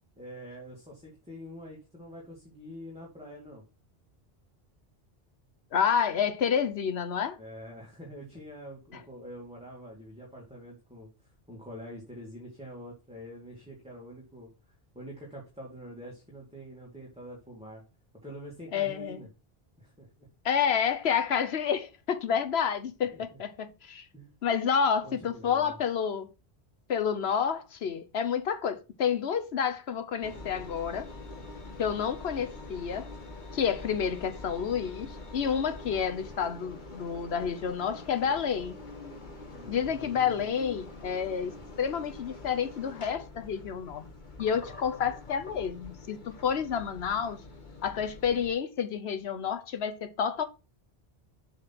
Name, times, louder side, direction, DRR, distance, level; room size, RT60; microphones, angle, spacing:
voice 1, 0.2-3.6 7.4-17.8 18.2-19.3 19.8-20.3 23.1-23.2 24.1-24.4 25.0-25.8 39.5-40.5, equal, 5° right, 2.1 m, -46 dB
voice 2, 5.7-7.4 18.7-19.2 20.4-24.1 24.4-26.3 26.9-31.1 31.8-33.1 33.5-38.8 39.7-44.1 44.4-47.4 47.8-50.5, left 7 dB, 80° left, 1.1 m, -29 dB
Engine, 30.2-48.5, left 2 dB, 50° left, 1.6 m, -45 dB
7.7 x 4.3 x 5.8 m
omnidirectional pair, 1.1 m